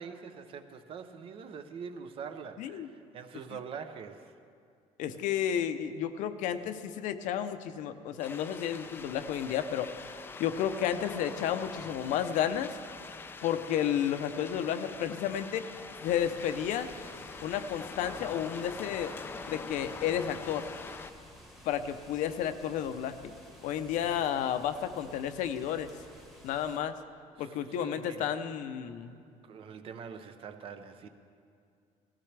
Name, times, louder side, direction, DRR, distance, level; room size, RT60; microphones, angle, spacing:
voice 1, 0.0-4.3 24.0-24.2 27.4-28.4 29.4-31.1, right 6 dB, 45° right, 9 dB, 0.7 m, -44 dB
voice 2, 5.0-12.7 13.4-15.7 16.0-16.9 17.4-19.1 19.5-20.7 21.6-23.3 23.6-25.9 26.4-26.9 27.4-29.2, left 9 dB, 75° left, 9 dB, 0.7 m, -32 dB
sound 1, 8.2-21.1, left 4 dB, 15° left, 0.4 m, -44 dB
sound 2, 16.0-26.8, equal, ahead, 1.2 m, -54 dB
17.5 x 15.0 x 3.4 m, 2.3 s
cardioid pair, 170°, 13 cm